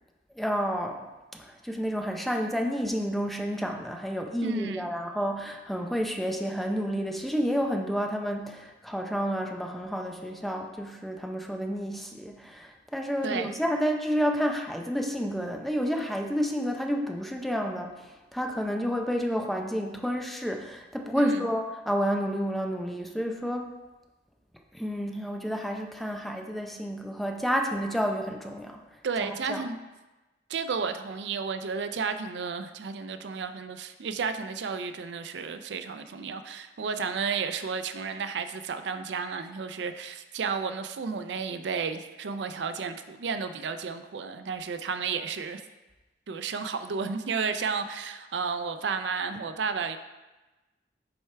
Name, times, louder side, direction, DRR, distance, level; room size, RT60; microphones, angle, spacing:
voice 1, 0.3-23.7 24.7-28.8 29.2-29.6, equal, ahead, 2 dB, 0.5 m, -30 dB
voice 2, 4.4-4.9 13.2-13.5 21.1-21.4 29.0-29.8 30.5-45.6 46.3-50.0, right 5 dB, 80° right, 9 dB, 0.4 m, -32 dB
7.9 x 4.5 x 3.3 m, 1.1 s
head